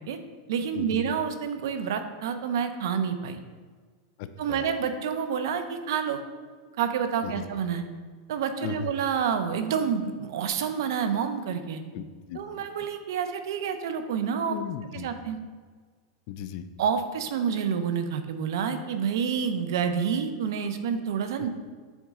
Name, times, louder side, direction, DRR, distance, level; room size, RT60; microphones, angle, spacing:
voice 1, 0.5-3.4 4.4-6.2 6.8-7.8 8.3-11.8 12.3-14.6 14.9-15.4 16.8-21.5, right 7 dB, 65° right, 9 dB, 0.6 m, -28 dB
voice 2, 4.2-4.7 7.2-7.4 8.6-8.9 11.9-12.4 14.5-15.1 16.3-16.6, left 9 dB, 40° left, 11 dB, 0.4 m, -36 dB
7.1 x 4.1 x 3.6 m, 1.5 s
supercardioid pair, 170°, 2 cm